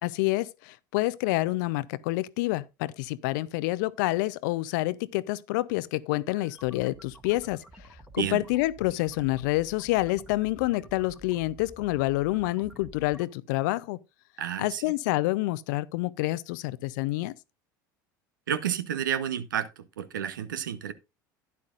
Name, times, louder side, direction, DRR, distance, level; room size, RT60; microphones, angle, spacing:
voice 1, 0.0-7.6 8.1-14.0 14.6-17.3, left 19 dB, 70° left, 0.5 m, -28 dB
sound 1, 6.1-13.2, right 1 dB, 10° right, 1.5 m, -50 dB
voice 2, 14.4-14.9 18.5-20.9, right 9 dB, 85° right, 0.8 m, -31 dB
12.0 x 9.6 x 2.4 m
hypercardioid pair, 80°, 10 cm